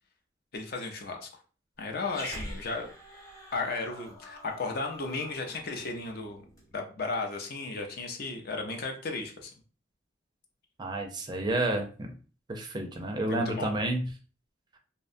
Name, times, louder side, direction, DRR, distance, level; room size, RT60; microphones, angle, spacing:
voice 1, 0.5-1.3 1.8-2.9 3.5-6.4 6.7-9.5 13.3-13.7, left 3 dB, 60° left, 3 dB, 0.5 m, -34 dB
Growling, 2.0-6.7, equal, 20° left, 0.8 m, -45 dB
voice 2, 10.8-11.9 12.5-14.0, right 2 dB, 25° right, 3 dB, 0.4 m, -30 dB
2.7 x 2.1 x 2.5 m, 0.38 s
head